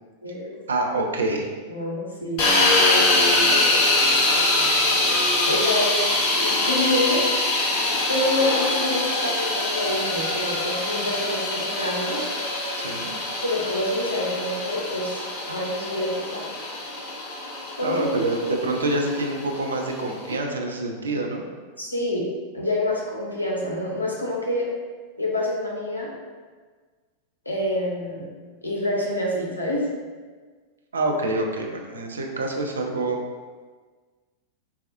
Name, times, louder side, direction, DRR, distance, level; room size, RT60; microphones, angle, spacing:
voice 1, 0.7-1.5 12.8-13.2 17.8-21.4 30.9-33.2, right 2 dB, 70° right, 1 dB, 0.4 m, -26 dB
voice 2, 1.7-2.4 5.5-7.2 8.1-12.3 13.4-16.5 17.8-18.3 21.8-22.2 22.5-24.7 25.2-26.1 27.5-28.3 28.6-29.8, left 1 dB, 80° left, -3 dB, 0.7 m, -27 dB
sound 1, 2.4-20.3, left 2 dB, 40° left, 0.8 m, -24 dB
4.1 x 2.3 x 2.6 m, 1.5 s
figure-of-eight pair, 90°, 0 cm